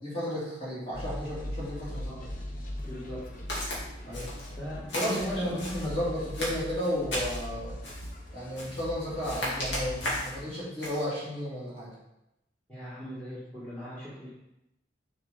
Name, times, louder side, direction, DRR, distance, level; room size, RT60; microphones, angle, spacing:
voice 1, 0.0-2.3 4.0-4.3 4.9-7.8 8.3-11.9, left 1 dB, 30° left, -8 dB, 2.9 m, -33 dB
sound 1, 0.9-10.4, equal, 45° left, 0.9 m, -40 dB
voice 2, 1.9-2.2 2.8-3.2 4.6-6.1 12.7-14.3, equal, 10° left, -9 dB, 1.8 m, -39 dB
Walk footsteps, 3.5-3.8 4.1-4.5 4.9-5.9 6.3-7.5 7.8-8.1 8.5-8.9 9.2-10.4 10.8-11.0, left 1 dB, 75° left, 2.6 m, -35 dB
7.0 x 5.3 x 4.0 m, 0.89 s
head